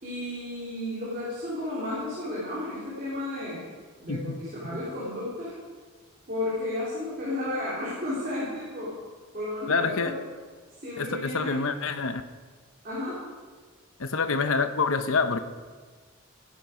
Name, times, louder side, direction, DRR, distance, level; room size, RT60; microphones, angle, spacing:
voice 1, 0.0-3.6 4.0-5.5 6.3-9.0 9.3-10.1 10.8-11.5 12.8-13.2, left 1 dB, 40° right, -8 dB, 3.3 m, -33 dB
voice 2, 9.7-10.1 11.0-12.2 14.0-15.4, left 4 dB, 75° left, 9 dB, 0.9 m, -26 dB
16.5 x 10.0 x 5.1 m, 1.5 s
head